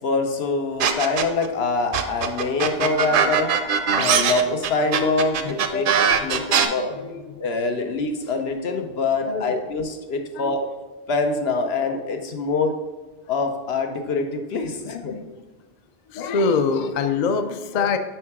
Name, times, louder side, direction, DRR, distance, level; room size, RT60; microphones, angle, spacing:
voice 1, 0.0-3.5 3.9-5.8 6.2-6.9 7.4-10.7 11.1-12.8 13.3-15.1, left 3 dB, 80° left, 5 dB, 1.0 m, -24 dB
sound 1, 0.8-1.5 1.9-6.7, right 7 dB, 65° right, 0.7 m, -20 dB
voice 2, 3.9-7.5 9.2-9.6 10.3-10.5 14.8-15.4 16.1-18.0, left 4 dB, 55° left, 9 dB, 0.5 m, -27 dB
6.1 x 4.6 x 4.7 m, 1.2 s
omnidirectional pair, 1.0 m